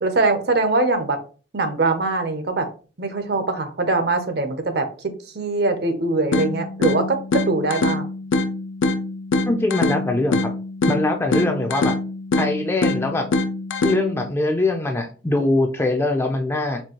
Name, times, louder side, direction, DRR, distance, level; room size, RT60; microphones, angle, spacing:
voice 1, 0.0-1.2 1.5-2.7 3.0-4.9 5.3-8.1, right 3 dB, 55° right, 8 dB, 0.6 m, -22 dB
sound 1, 6.3-14.3, left 2 dB, 80° left, 0.4 m, -24 dB
voice 2, 9.5-10.5 10.9-11.9 12.4-13.3 13.8-16.8, left 2 dB, 15° left, 4 dB, 0.4 m, -22 dB
4.4 x 2.7 x 2.9 m, 0.37 s
head